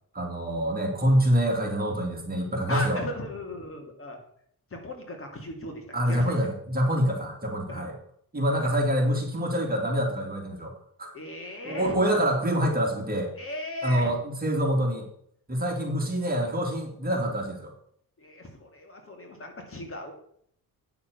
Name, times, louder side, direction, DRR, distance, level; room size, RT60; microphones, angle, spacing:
voice 1, 0.1-3.0 5.9-8.0 8.3-10.7 11.0-11.1 11.6-13.3 13.8-15.1 15.5-17.7, equal, 25° right, 0 dB, 2.9 m, -26 dB
voice 2, 2.7-4.2 4.7-6.3 7.7-7.8 8.6-8.7 11.1-12.0 13.3-14.1 18.2-20.1, left 1 dB, 35° left, 2 dB, 2.7 m, -37 dB
9.6 x 6.8 x 6.9 m, 0.65 s
cardioid pair, 110°, 37 cm